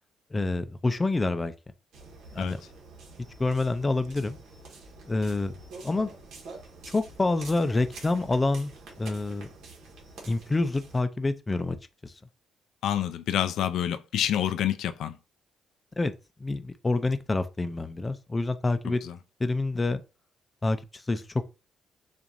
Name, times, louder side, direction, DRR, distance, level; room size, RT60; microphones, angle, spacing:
voice 1, 0.3-1.5 2.3-2.6 3.4-4.4 5.1-5.6 5.8-6.1 6.9-8.7 9.0-9.5 10.2-11.8 12.0-12.1 16.0-16.1 16.4-19.0 19.4-20.0 20.6-21.5, left 2 dB, 20° left, 0.5 m, -27 dB
sound 1, 1.9-11.0, right 3 dB, 80° right, 1.3 m, -47 dB
voice 2, 12.8-15.2 19.0-19.1, left 10 dB, 75° left, 0.4 m, -28 dB
7.0 x 2.5 x 2.6 m
cardioid pair, 90°, 0 cm